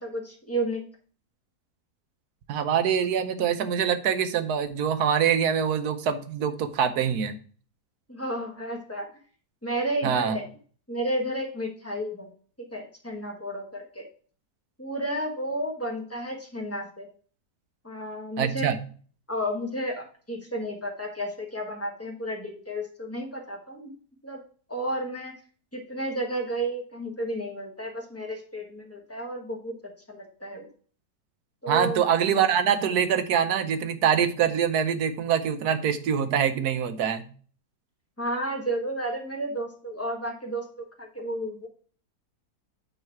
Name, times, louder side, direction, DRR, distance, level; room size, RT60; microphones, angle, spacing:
voice 1, 0.0-0.8 8.1-9.1 9.6-10.5 10.9-12.3 12.6-14.0 14.8-17.1 17.8-18.8 19.3-23.9 24.2-24.4 24.7-25.3 25.7-29.7 30.1-30.7 31.6-32.0 38.2-41.7, right 1 dB, 10° left, 1 dB, 1.0 m, -32 dB
voice 2, 2.5-7.4 10.0-10.4 18.4-18.8 31.7-37.3, right 8 dB, 70° right, 9 dB, 1.2 m, -24 dB
9.0 x 3.2 x 4.5 m, 0.43 s
omnidirectional pair, 1.8 m